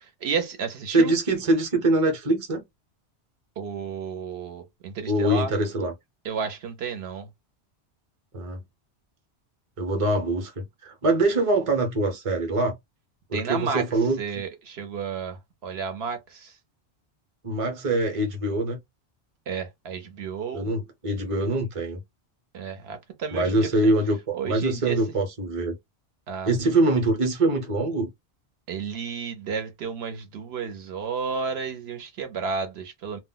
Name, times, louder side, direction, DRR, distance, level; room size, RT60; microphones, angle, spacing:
voice 1, 0.2-1.1 3.6-5.5 6.2-7.3 13.3-13.8 14.2-16.5 19.5-20.7 22.5-23.9 24.3-25.0 26.3-26.5 28.7-33.2, right 6 dB, 70° right, 0.9 m, -32 dB
voice 2, 0.9-2.6 5.0-5.9 8.3-8.6 9.8-12.8 13.3-14.2 17.4-18.8 20.5-22.0 23.3-25.8 26.4-28.1, right 2 dB, 35° right, 0.7 m, -24 dB
2.2 x 2.0 x 3.7 m
omnidirectional pair, 1.1 m